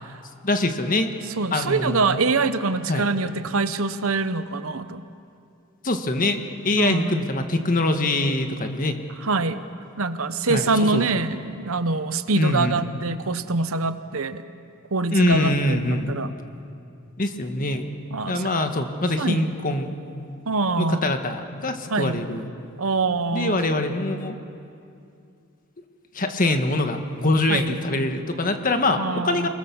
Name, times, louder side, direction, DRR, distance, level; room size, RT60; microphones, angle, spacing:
voice 1, 0.4-1.1 1.5-2.2 2.9-3.1 5.8-9.0 10.5-11.0 12.3-12.8 15.1-16.1 17.2-17.9 18.3-19.9 20.8-22.5 23.3-24.4 26.1-29.5, left 2 dB, 40° left, 6 dB, 1.6 m, -24 dB
voice 2, 1.4-5.0 6.8-7.2 9.2-9.6 10.0-14.4 14.9-16.3 18.1-18.5 19.2-19.5 20.5-21.1 21.9-22.2 22.8-23.6 27.5-27.8 29.0-29.5, right 3 dB, 70° right, 11 dB, 1.0 m, -24 dB
29.0 x 20.5 x 7.2 m, 2.5 s
head